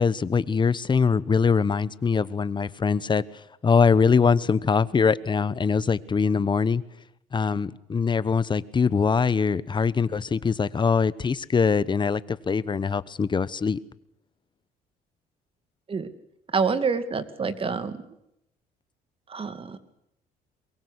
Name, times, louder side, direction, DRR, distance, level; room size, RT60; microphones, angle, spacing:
voice 1, 0.0-3.2 3.6-6.8 7.3-13.8, left 5 dB, 25° left, 18 dB, 1.1 m, -23 dB
voice 2, 16.5-18.0 19.3-19.8, right 5 dB, 35° right, 11 dB, 2.5 m, -27 dB
23.0 x 22.5 x 8.2 m, 0.79 s
cardioid pair, 110°, 17 cm